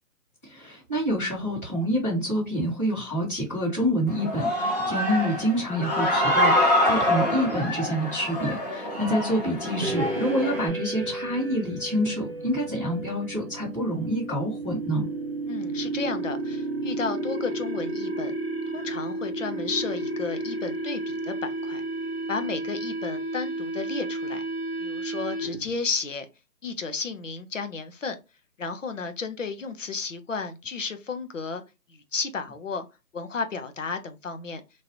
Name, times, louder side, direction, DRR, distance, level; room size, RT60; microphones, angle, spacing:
voice 1, 0.4-15.1, equal, 10° left, 1.6 m, -27 dB
Human voice / Cheering, 4.1-10.7, left 1 dB, 25° left, 1.1 m, -25 dB
sound 1, 9.8-25.7, right 2 dB, 45° right, 0.4 m, -32 dB
voice 2, 15.5-18.3 18.7-21.8 22.3-24.4 24.8-26.3 26.6-28.2 28.6-31.6 31.9-32.8 33.1-34.6, left 4 dB, 50° left, 0.6 m, -33 dB
3.0 x 2.6 x 2.9 m
hypercardioid pair, 170°, 48 cm